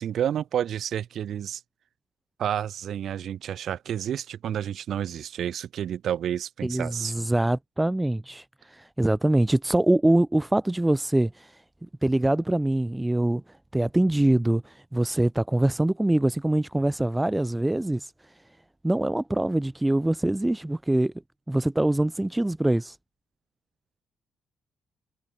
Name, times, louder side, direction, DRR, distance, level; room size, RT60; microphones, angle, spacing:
voice 1, 0.0-1.6 2.4-7.1, right 10 dB, 65° right, 8.0 m, -30 dB
voice 2, 6.6-13.4 13.7-18.1 18.8-21.1 21.5-23.0, right 1 dB, 10° right, 4.4 m, -24 dB
cardioid pair, 90°, 0 cm